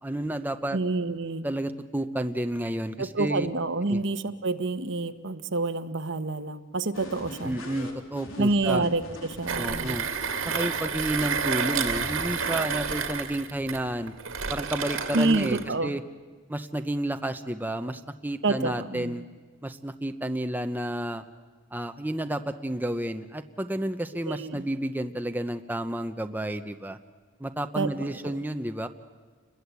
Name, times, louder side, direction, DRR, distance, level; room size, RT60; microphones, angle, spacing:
voice 1, 0.0-0.8 1.4-3.5 3.9-4.0 7.4-8.8 9.6-10.1 10.4-14.1 14.5-16.0 16.5-19.2 19.6-21.2 21.7-27.0 27.4-28.9, right 1 dB, 10° right, 7 dB, 0.8 m, -31 dB
voice 2, 0.7-1.5 3.0-7.6 8.4-9.9 15.1-15.9 18.4-19.2 24.2-24.6 27.7-28.3, right 3 dB, 65° right, 10 dB, 1.1 m, -28 dB
sound 1, 6.9-10.7 11.7-12.6, left 2 dB, 85° left, 3.5 m, -41 dB
Mechanisms, 9.5-15.7, right 6 dB, 85° right, 2.2 m, -30 dB
29.5 x 21.5 x 8.2 m, 1.5 s
head